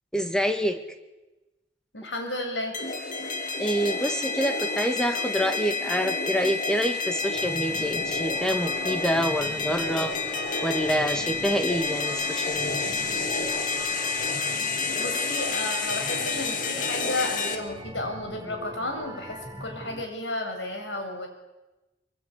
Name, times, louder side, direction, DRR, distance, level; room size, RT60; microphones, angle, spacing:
voice 1, 0.1-0.8 3.6-10.1 10.6-12.9, equal, 5° left, 6 dB, 2.2 m, -27 dB
voice 2, 1.9-2.8 15.0-21.3, left 2 dB, 85° left, 4 dB, 7.5 m, -32 dB
sound 1, 2.7-17.5, left 4 dB, 45° left, 2.5 m, -29 dB
sound 2, 7.3-20.0, right 1 dB, 20° right, 2.4 m, -40 dB
25.0 x 23.5 x 10.0 m, 1.1 s
head